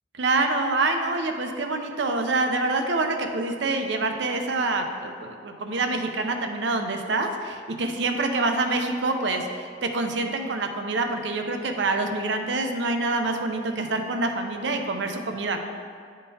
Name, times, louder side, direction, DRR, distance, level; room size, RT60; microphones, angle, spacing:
voice 1, 0.2-15.6, right 3 dB, 65° right, 5 dB, 0.5 m, -26 dB
11.0 x 3.7 x 2.7 m, 2.2 s
head